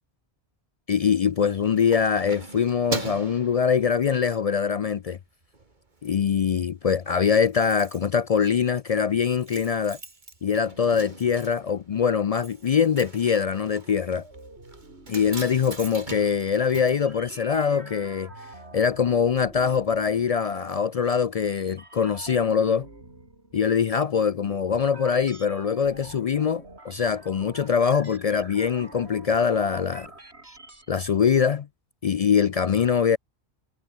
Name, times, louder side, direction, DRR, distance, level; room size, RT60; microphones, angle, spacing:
voice 1, 0.9-5.2 6.0-10.0 10.4-14.3 15.1-18.3 18.7-22.9 23.5-30.1 30.9-31.7 32.0-33.2, left 7 dB, 55° left, 0.4 m, -23 dB
Keys jangling, 1.3-4.4 4.8-5.1 5.4-6.1 6.4-6.5 6.7-6.8 7.0-17.8 18.1-18.2, right 3 dB, 45° right, 2.3 m, -40 dB
sound 1, 12.4-31.3, right 2 dB, 75° right, 4.9 m, -47 dB
omnidirectional pair, 1.1 m